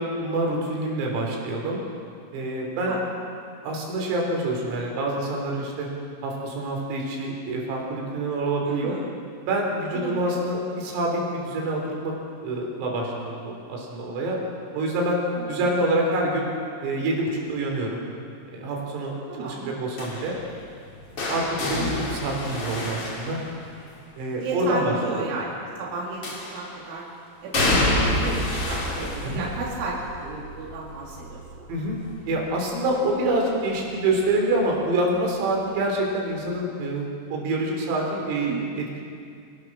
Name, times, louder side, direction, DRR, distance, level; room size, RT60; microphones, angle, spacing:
voice 1, 0.0-1.8 2.3-2.9 3.6-5.9 6.2-9.0 9.4-12.1 12.4-14.4 14.7-15.2 15.5-16.5 16.8-18.1 18.5-20.4 21.3-23.4 24.2-25.2 29.2-29.5 31.7-39.0, right 2 dB, 85° right, 0 dB, 6.2 m, -26 dB
voice 2, 2.6-3.0 8.7-9.1 9.9-10.5 15.2-15.7 19.3-19.7 21.8-22.3 24.4-27.1 27.4-31.7 38.1-38.8, right 3 dB, 70° right, -4 dB, 5.3 m, -33 dB
sound 1, 20.0-24.0 26.2-26.8 27.5-33.3 33.7-34.1 35.3-35.4, left 1 dB, 35° left, 2.9 m, -29 dB
26.0 x 19.0 x 6.1 m, 2.3 s
omnidirectional pair, 5.9 m